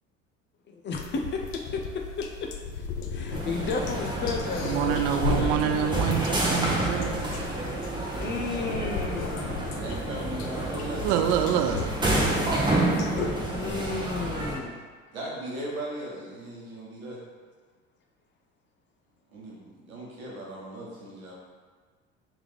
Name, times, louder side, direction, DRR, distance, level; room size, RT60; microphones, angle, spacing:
voice 1, 0.7-1.8 2.2-2.5 2.8-6.1 8.2-9.6 13.5-14.8, left 4 dB, 30° left, 2 dB, 0.5 m, -33 dB
sound 1, 0.9-13.3, left 6 dB, 70° left, 0.6 m, -37 dB
sound 2, 3.3-14.6, right 2 dB, 10° right, 0.8 m, -29 dB
voice 2, 4.6-7.2 11.0-11.9, right 9 dB, 60° right, 6 dB, 0.5 m, -26 dB
voice 3, 9.7-11.1 12.6-14.1 15.1-17.2 19.3-21.3, right 1 dB, 85° right, -4 dB, 1.1 m, -38 dB
3.6 x 3.4 x 3.2 m, 1.5 s
figure-of-eight pair, 65°, 41 cm